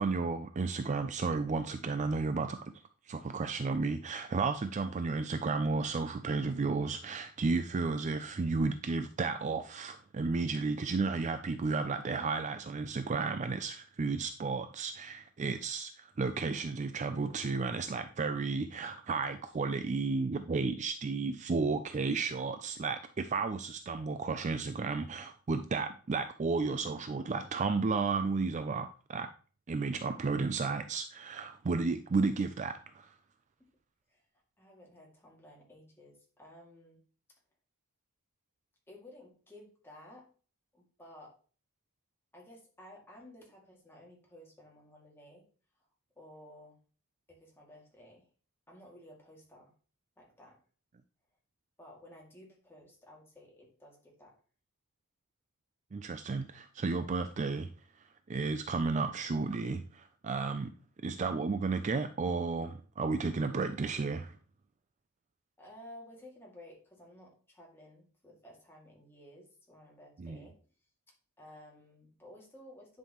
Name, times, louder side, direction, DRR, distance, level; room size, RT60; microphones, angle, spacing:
voice 1, 0.0-2.7 3.1-29.3 29.7-33.1 55.9-57.7 58.3-60.7 61.0-64.3 70.2-70.4, right 4 dB, 30° right, 0.4 m, -33 dB
voice 2, 34.6-37.0 38.9-40.3 40.7-41.3 42.3-45.5 46.2-46.8 47.3-48.3 48.7-49.7 50.2-50.6 51.8-54.3 65.6-70.6 71.4-73.0, left 1 dB, 10° left, 2.3 m, -54 dB
10.0 x 5.5 x 3.0 m
head